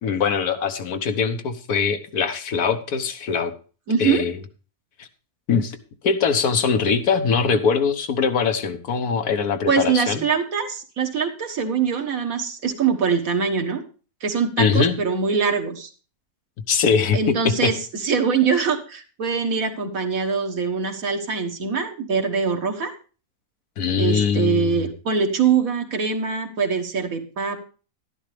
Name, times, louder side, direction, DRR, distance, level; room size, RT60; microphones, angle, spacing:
voice 1, 0.0-3.5 4.0-4.4 5.0-5.1 5.5-5.7 6.0-10.2 14.6-15.0 16.7-17.7 23.8-24.9, left 6 dB, 80° left, 7 dB, 1.6 m, -22 dB
voice 2, 3.9-4.2 9.7-13.8 14.2-15.9 17.1-22.9 24.0-27.6, right 6 dB, 65° right, 4 dB, 1.8 m, -23 dB
12.0 x 11.0 x 3.3 m, 0.36 s
omnidirectional pair, 1.6 m